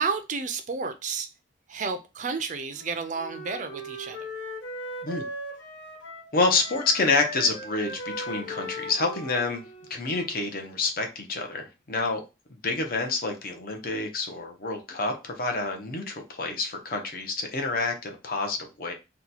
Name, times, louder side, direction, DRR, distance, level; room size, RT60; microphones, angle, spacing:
voice 1, 0.0-1.3 1.7-4.3, right 5 dB, 40° right, 0.4 m, -31 dB
Wind instrument woodwind instrument, 2.7-6.3 6.6-10.5, equal, 80° left, 1.0 m, -39 dB
voice 2, 6.3-9.6 9.9-12.2 12.6-18.9, left 3 dB, 50° left, 0.7 m, -28 dB
2.9 x 2.2 x 4.0 m
head